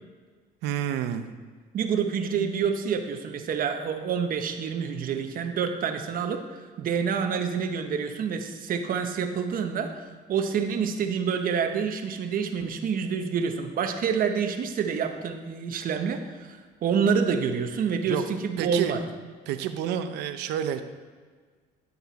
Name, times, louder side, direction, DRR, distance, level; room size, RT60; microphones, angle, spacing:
voice 1, 0.6-1.3 18.0-18.2 18.6-18.9 19.5-20.8, right 10 dB, 90° right, 9 dB, 0.7 m, -29 dB
voice 2, 1.7-9.9 10.3-19.0, right 6 dB, 55° right, 6 dB, 1.0 m, -27 dB
11.0 x 6.9 x 4.1 m, 1.5 s
cardioid pair, 110°, 17 cm